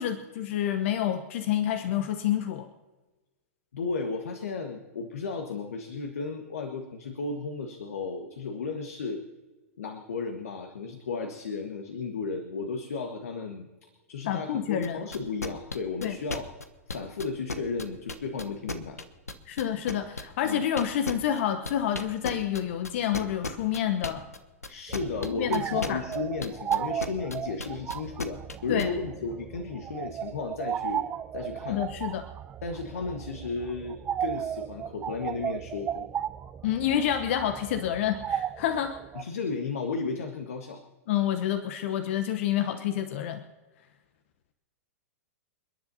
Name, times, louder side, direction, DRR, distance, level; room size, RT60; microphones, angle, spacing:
voice 1, 0.0-2.7 14.2-15.0 16.0-16.2 19.5-24.2 25.3-26.0 28.7-28.9 31.7-32.3 36.6-39.0 41.1-43.4, left 10 dB, 55° left, 8 dB, 1.0 m, -28 dB
voice 2, 3.7-9.2 9.8-16.5 16.9-19.0 20.4-20.7 24.7-31.0 31.3-31.8 32.6-36.1 39.1-40.8, left 4 dB, 70° left, 5 dB, 1.5 m, -34 dB
sound 1, 14.8-28.8, left 3 dB, 85° left, 1.1 m, -35 dB
sound 2, 24.9-39.2, right 9 dB, 20° right, 0.5 m, -35 dB
29.0 x 10.5 x 2.8 m, 1.2 s
figure-of-eight pair, 105°, 8 cm